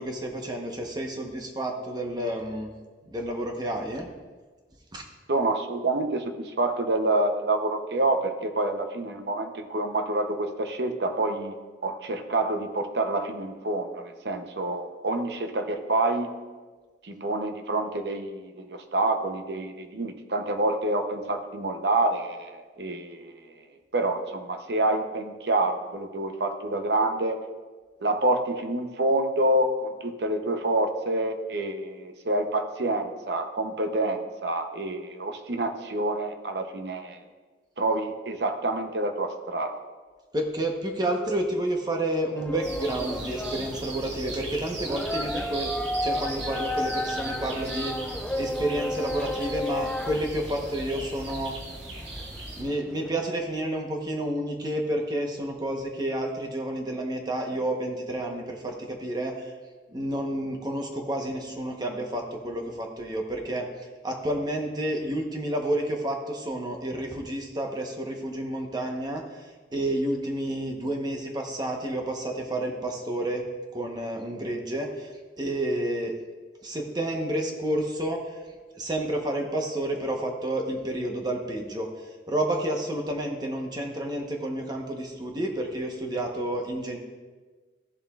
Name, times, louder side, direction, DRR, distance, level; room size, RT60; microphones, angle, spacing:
voice 1, 0.0-2.7 3.1-4.1 4.9-5.0 40.3-45.7 46.0-47.9 48.4-51.6 52.5-59.5 59.9-63.7 64.0-69.2 69.7-73.4 73.7-75.1 75.4-76.1 76.6-78.2 78.8-81.9 82.3-87.0, right 1 dB, 25° right, 1 dB, 1.0 m, -30 dB
voice 2, 5.3-11.5 11.8-16.3 17.0-23.3 23.9-27.4 28.0-37.2 37.8-39.8, right 2 dB, 65° right, 6 dB, 0.8 m, -27 dB
sound 1, 42.4-53.3, left 1 dB, 5° left, 0.3 m, -34 dB
sound 2, 42.6-52.6, right 2 dB, 80° right, 1.9 m, -38 dB
14.5 x 7.2 x 2.4 m, 1.4 s
head